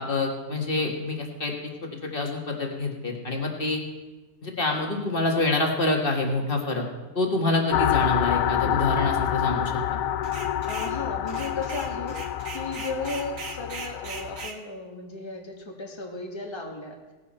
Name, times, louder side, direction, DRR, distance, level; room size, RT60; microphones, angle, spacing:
voice 1, 0.0-3.8 4.4-6.9 7.2-9.8, left 2 dB, 35° left, 1 dB, 1.9 m, -26 dB
sound 1, 7.7-14.5, left 11 dB, 70° left, 0.9 m, -27 dB
sound 2, 10.2-11.0 11.3-14.6, right 4 dB, 60° right, 1.6 m, -39 dB
voice 2, 10.7-12.2 12.5-17.0, left 3 dB, 20° left, 1 dB, 1.6 m, -35 dB
17.5 x 10.5 x 4.4 m, 1.2 s
omnidirectional pair, 1.6 m